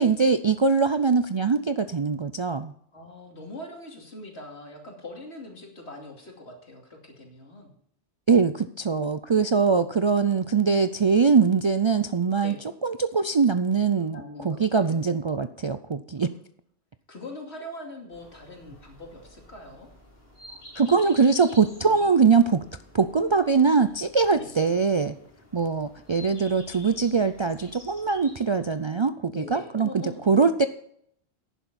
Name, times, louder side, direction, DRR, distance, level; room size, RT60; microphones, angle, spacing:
voice 1, 0.0-2.7 8.3-12.5 12.8-16.3 20.8-22.6 22.9-25.2 25.5-30.7, right 5 dB, 50° right, 9 dB, 0.3 m, -22 dB
voice 2, 2.9-7.7 12.4-12.6 14.1-15.1 16.2-16.3 17.1-19.9 20.9-21.4 21.8-22.1 24.3-24.5 29.3-30.4, left 2 dB, 85° left, 1 dB, 2.8 m, -42 dB
sound 1, 18.1-28.8, left 1 dB, 65° left, 3.8 m, -50 dB
11.5 x 10.0 x 4.2 m, 0.69 s
omnidirectional pair, 1.1 m